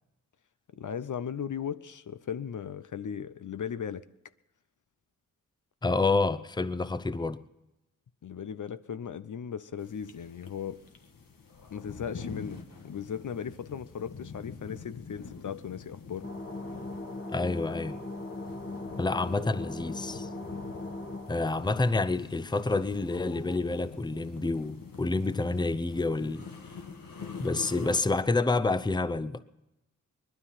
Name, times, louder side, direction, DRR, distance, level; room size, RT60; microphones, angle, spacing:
voice 1, 0.7-4.1 8.2-10.8 11.7-16.3, left 7 dB, 65° left, 0.6 m, -37 dB
voice 2, 5.8-7.4 17.3-18.0 19.0-20.3 21.3-26.5 27.4-29.4, left 3 dB, 15° left, 0.6 m, -28 dB
sound 1, 9.8-28.0, left 5 dB, 80° left, 1.4 m, -46 dB
sound 2, 16.2-21.8, left 2 dB, 35° left, 1.7 m, -39 dB
20.0 x 12.5 x 5.7 m
cardioid pair, 50°, 33 cm